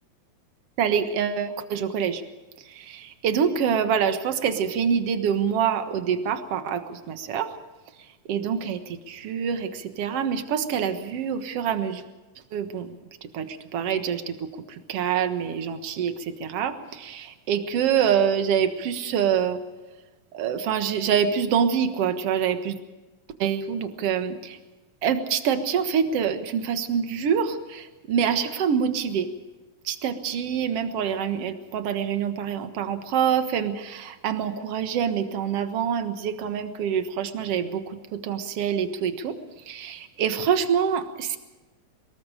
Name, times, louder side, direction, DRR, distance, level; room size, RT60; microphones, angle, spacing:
voice 1, 0.8-2.2 2.7-7.5 8.3-12.0 12.5-13.0 13.2-19.6 20.3-22.8 23.4-24.6 25.0-29.3 29.9-39.4 39.7-41.4, right 7 dB, 55° right, 8 dB, 2.2 m, -26 dB
25.0 x 21.0 x 5.0 m, 1.2 s
omnidirectional pair, 3.5 m